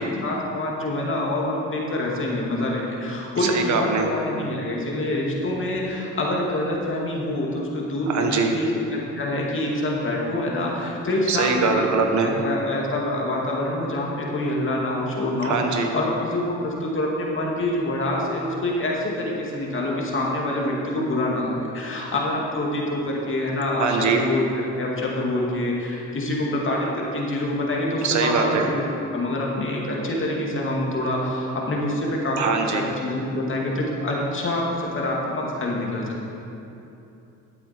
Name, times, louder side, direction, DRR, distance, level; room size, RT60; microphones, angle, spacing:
voice 1, 0.0-11.9 12.2-24.5 24.7-28.9 29.1-36.3, left 1 dB, 40° left, -3 dB, 2.3 m, -26 dB
voice 2, 3.5-4.1 8.1-8.6 11.3-12.3 15.4-15.9 23.8-24.3 28.0-28.7 32.4-32.9, right 5 dB, 70° right, 3 dB, 1.3 m, -22 dB
12.5 x 8.2 x 4.4 m, 2.8 s
cardioid pair, 90°, 30 cm